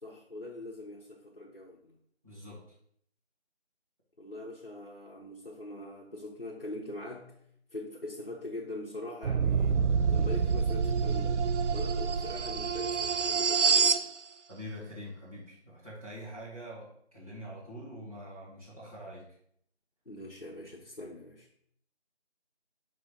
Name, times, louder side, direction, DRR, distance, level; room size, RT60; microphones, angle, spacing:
voice 1, 0.0-2.0 4.2-7.4 7.7-14.1 20.1-21.5, left 1 dB, 55° left, -3 dB, 0.9 m, -43 dB
voice 2, 2.2-2.6 14.5-19.2, equal, 30° right, -10 dB, 1.9 m, -44 dB
sound 1, 9.2-14.1, right 6 dB, 90° right, 0.5 m, -27 dB
6.2 x 3.3 x 5.2 m, 0.67 s
figure-of-eight pair, 180°, 34 cm